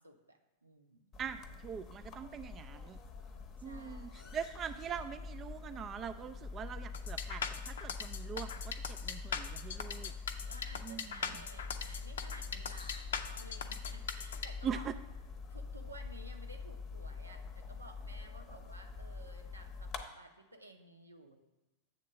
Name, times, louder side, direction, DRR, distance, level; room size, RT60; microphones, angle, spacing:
voice 1, 0.0-1.2 3.6-4.4 10.5-14.9 15.5-21.3, right 2 dB, 80° right, 5 dB, 0.8 m, -55 dB
sound 1, 1.1-20.0, left 4 dB, 30° left, 0.8 m, -45 dB
voice 2, 1.2-3.0 3.6-10.1 10.8-11.1 14.6-14.9, right 7 dB, 25° right, 10 dB, 0.3 m, -42 dB
sound 2, 6.9-14.5, left 7 dB, 65° left, 0.5 m, -40 dB
7.6 x 3.6 x 6.5 m, 1.1 s
figure-of-eight pair, 90°, 0 cm